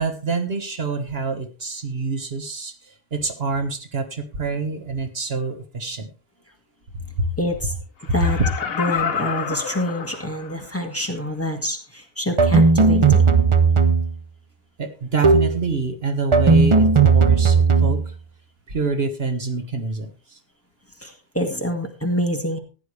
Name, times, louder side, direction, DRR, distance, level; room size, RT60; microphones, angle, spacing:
voice 1, 0.0-6.1 6.9-7.3 14.8-18.0 18.7-20.1, right 4 dB, 70° right, 6 dB, 1.7 m, -26 dB
voice 2, 7.4-7.7 8.1-8.4 8.7-13.2 21.0-22.6, equal, 15° left, 3 dB, 1.9 m, -26 dB
Laughter, 8.0-10.7 11.2-11.3, left 7 dB, 65° left, 1.2 m, -28 dB
sound 1, 12.4-14.2 15.2-15.7 16.3-18.1, right 4 dB, 35° right, 0.7 m, -15 dB
15.0 x 10.0 x 3.3 m, 0.34 s
omnidirectional pair, 1.1 m